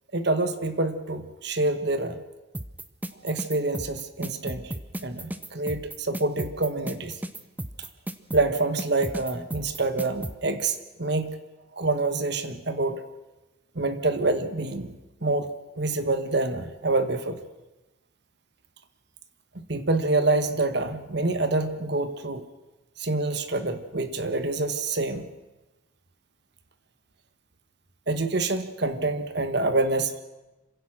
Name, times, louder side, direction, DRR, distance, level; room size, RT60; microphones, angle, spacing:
voice 1, 0.1-2.2 3.2-7.2 8.3-11.4 11.7-13.0 13.7-14.9 15.2-15.5 15.8-17.4 19.7-22.5 23.0-25.3 28.1-30.2, right 2 dB, 55° right, 10 dB, 1.4 m, -26 dB
sound 1, 2.5-10.3, right 1 dB, 10° right, 0.8 m, -34 dB
26.5 x 16.0 x 6.2 m, 1.1 s
head